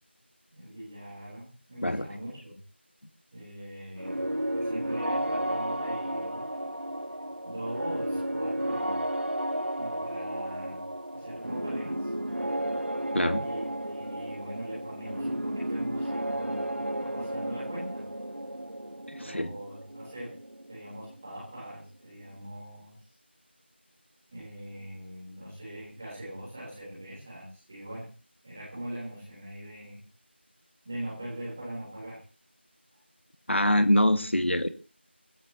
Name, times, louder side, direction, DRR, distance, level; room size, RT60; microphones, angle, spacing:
voice 1, 0.5-2.5 3.3-6.5 7.4-9.0 9.7-10.8 11.1-12.1 13.4-18.0 19.2-20.4 20.7-23.0 24.3-28.1 28.4-30.0 30.8-32.2, right 1 dB, 10° right, -6 dB, 3.7 m, -41 dB
sound 1, 4.0-21.6, right 1 dB, 75° right, 1.6 m, -33 dB
voice 2, 13.1-13.4 19.1-19.5 33.5-34.7, left 1 dB, 80° left, 10 dB, 1.6 m, -24 dB
25.0 x 13.5 x 2.9 m, 0.37 s
figure-of-eight pair, 175°, 6 cm